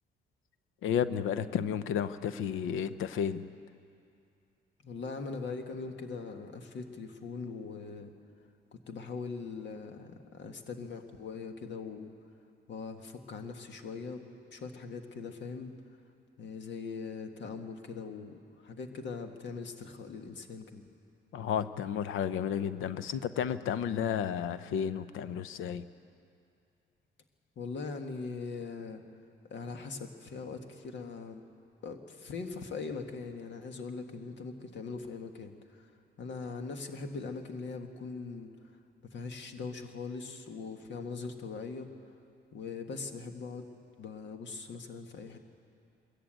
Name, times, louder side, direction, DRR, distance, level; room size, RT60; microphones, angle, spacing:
voice 1, 0.8-3.5 21.3-25.8, left 8 dB, 85° left, 13 dB, 0.7 m, -32 dB
voice 2, 4.8-8.1 8.7-12.1 12.7-15.7 16.4-20.8 27.6-29.0 29.5-31.4 31.8-35.9 36.2-38.5 39.1-41.9 42.5-43.7 44.0-45.4, left 4 dB, 65° left, 6 dB, 1.7 m, -41 dB
21.0 x 14.0 x 9.0 m, 2.5 s
cardioid pair, 90°, 20 cm